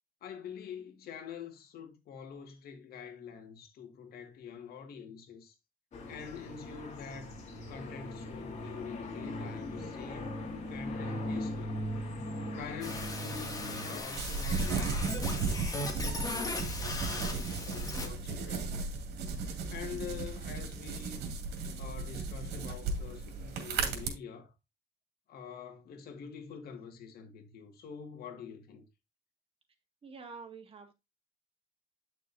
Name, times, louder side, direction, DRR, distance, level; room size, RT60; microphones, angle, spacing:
voice 1, 0.2-5.5 6.1-7.4 7.7-10.4 10.7-11.8 12.6-15.6 16.0-18.8 19.7-21.2 21.8-24.5 25.3-28.8, left 7 dB, 65° left, 2.0 m, -46 dB
sound 1, 5.9-14.0, left 1 dB, 45° left, 3.4 m, -39 dB
sound 2, 12.8-18.1, left 2 dB, 20° left, 2.3 m, -38 dB
sound 3, 14.1-24.1, right 4 dB, 75° right, 2.5 m, -35 dB
voice 2, 30.0-30.9, right 5 dB, 35° right, 2.0 m, -47 dB
9.1 x 6.3 x 2.7 m
cardioid pair, 110°, 17 cm